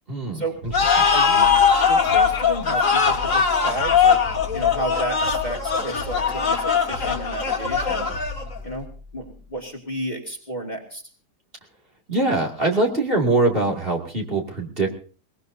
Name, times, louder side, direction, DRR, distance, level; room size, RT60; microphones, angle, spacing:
voice 1, 0.1-0.4 1.0-1.1 12.1-14.9, right 2 dB, 35° right, 0 dB, 2.7 m, -22 dB
sound 1, 0.6-9.7, left 3 dB, 55° right, 5.0 m, -37 dB
sound 2, 0.7-8.6, left 6 dB, 50° left, 2.3 m, -20 dB
voice 2, 1.1-1.5 1.9-4.2 4.5-8.1 8.6-8.9 9.1-11.0, right 1 dB, 25° left, 1 dB, 2.3 m, -32 dB
22.0 x 21.0 x 2.8 m, 0.40 s
omnidirectional pair, 1.8 m